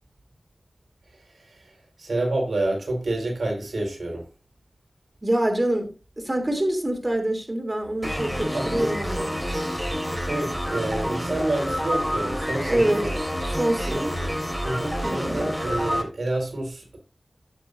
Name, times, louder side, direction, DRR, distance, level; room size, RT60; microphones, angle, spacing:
voice 1, 1.3-1.7 2.0-4.3 8.5-8.9 9.4-13.2 13.8-14.4 14.6-17.0, right 2 dB, 90° right, 4.5 m, -29 dB
voice 2, 5.2-9.3 12.7-13.0 13.4-14.0 15.0-15.5, right 1 dB, 30° right, 3.1 m, -25 dB
sound 1, 8.0-16.0, equal, 5° right, 3.3 m, -28 dB
13.5 x 7.4 x 2.6 m
wide cardioid pair, 55°, 0 cm